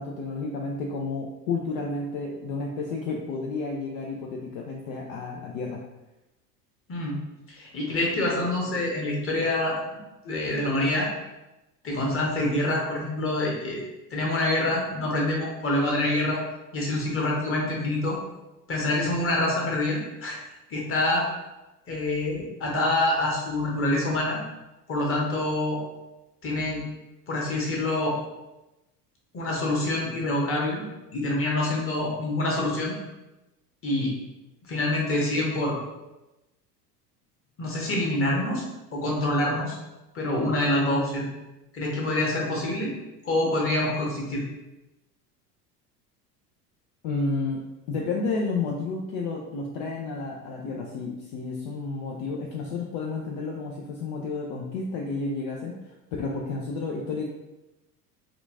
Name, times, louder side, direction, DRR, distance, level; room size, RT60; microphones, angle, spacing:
voice 1, 0.0-5.8 47.0-57.3, left 3 dB, 55° left, -1 dB, 0.6 m, -31 dB
voice 2, 6.9-7.2 7.5-9.8 10.2-11.1 11.8-13.8 14.1-16.4 16.7-18.2 18.7-20.4 20.7-21.3 21.9-24.4 24.9-25.8 26.4-26.8 27.3-28.2 29.3-30.8 31.1-33.0 33.8-34.2 34.6-35.8 37.6-38.6 38.9-39.8 40.1-41.3 41.7-42.9 43.2-44.4, left 1 dB, 25° left, -2 dB, 1.2 m, -26 dB
4.3 x 2.4 x 2.6 m, 0.99 s
hypercardioid pair, 75°, 49 cm